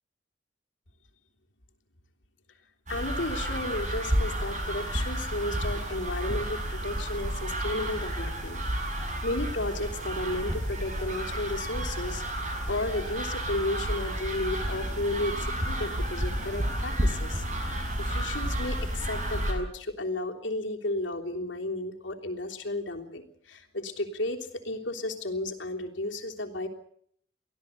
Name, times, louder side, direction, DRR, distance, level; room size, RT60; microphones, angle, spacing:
voice 1, 2.9-8.6 8.9-26.7, left 1 dB, 85° left, 2 dB, 3.4 m, -33 dB
sound 1, 2.9-19.5, equal, 40° right, 6.5 m, -31 dB
24.5 x 16.5 x 8.3 m, 0.66 s
head